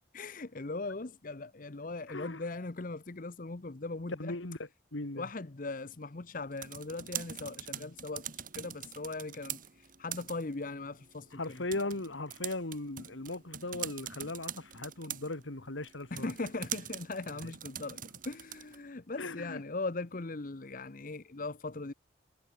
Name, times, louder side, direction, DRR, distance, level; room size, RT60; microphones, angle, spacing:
voice 1, 0.1-4.4 5.2-11.6 16.1-21.9, left 3 dB, 45° left, 0.9 m, -39 dB
voice 2, 2.1-2.4 4.2-5.3 7.7-7.9 11.3-16.3 17.4-17.5 19.2-19.6, left 2 dB, 75° left, 2.4 m, -38 dB
sound 1, 6.4-18.9, right 10 dB, 45° right, 4.0 m, -44 dB
head